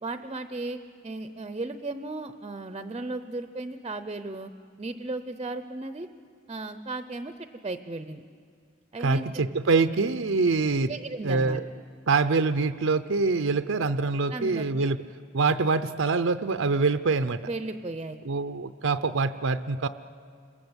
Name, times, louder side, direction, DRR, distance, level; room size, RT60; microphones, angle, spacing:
voice 1, 0.0-4.5 4.8-6.1 6.5-8.2 8.9-9.4 10.9-11.6 14.3-14.9 17.4-18.2, right 2 dB, 25° right, 10 dB, 0.7 m, -35 dB
voice 2, 9.0-10.9 11.2-11.6 12.1-15.0 15.3-17.4 18.3-19.9, right 4 dB, 75° right, 10 dB, 0.7 m, -25 dB
28.5 x 21.5 x 8.1 m, 2.2 s
head